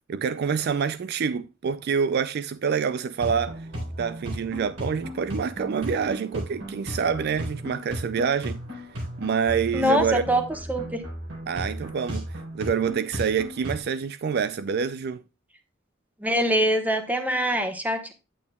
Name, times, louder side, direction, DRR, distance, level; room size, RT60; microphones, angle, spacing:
voice 1, 0.1-3.7 4.0-8.6 9.2-10.2 11.5-15.2, right 6 dB, 55° right, 0.4 m, -27 dB
sound 1, 3.2-13.8, equal, 80° right, 4.3 m, -35 dB
voice 2, 9.7-11.0 16.2-18.1, equal, 10° right, 1.2 m, -24 dB
8.6 x 8.5 x 2.2 m
head